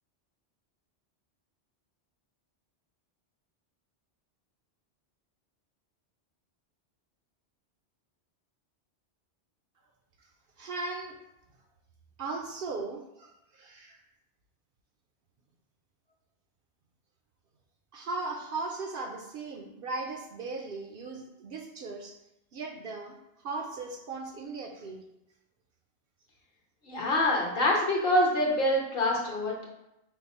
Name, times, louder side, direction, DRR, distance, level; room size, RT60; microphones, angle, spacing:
voice 1, 10.6-11.2 12.2-14.0 17.9-22.1 22.5-25.0, right 3 dB, 60° right, 1 dB, 0.7 m, -37 dB
voice 2, 26.9-29.7, left 1 dB, 55° left, -2 dB, 1.1 m, -25 dB
5.6 x 2.0 x 4.1 m, 0.89 s
omnidirectional pair, 1.2 m